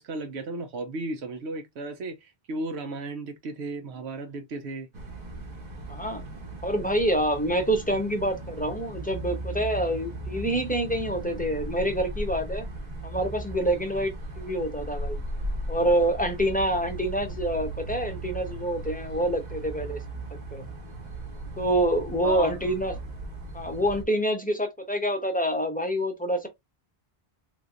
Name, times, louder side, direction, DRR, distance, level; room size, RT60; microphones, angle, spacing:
voice 1, 0.0-4.9 22.2-22.7, right 2 dB, 85° right, 1.0 m, -35 dB
sound 1, 4.9-24.0, right 1 dB, 45° right, 1.0 m, -37 dB
voice 2, 5.9-6.2 6.6-12.6 13.0-15.2 15.7-20.0 20.5-20.6 21.6-22.9 23.5-26.5, right 1 dB, 10° left, 0.6 m, -26 dB
3.3 x 3.1 x 2.4 m
omnidirectional pair, 1.1 m